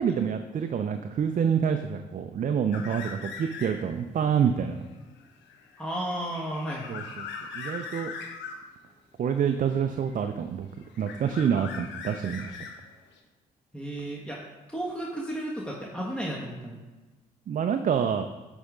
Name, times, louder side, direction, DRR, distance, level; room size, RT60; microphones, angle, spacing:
voice 1, 0.0-4.8 6.9-7.3 7.5-8.1 9.2-10.7 11.0-12.6 17.5-18.3, right 7 dB, 45° right, 7 dB, 0.5 m, -27 dB
sound 1, 2.7-4.0 4.4-8.7 9.7-10.5 10.8-13.2, left 5 dB, 70° left, 1.0 m, -41 dB
voice 2, 5.8-7.0 13.7-14.4 14.7-16.8, right 1 dB, 5° left, -3 dB, 1.4 m, -33 dB
9.5 x 3.5 x 5.1 m, 1.2 s
hypercardioid pair, 45°, 20 cm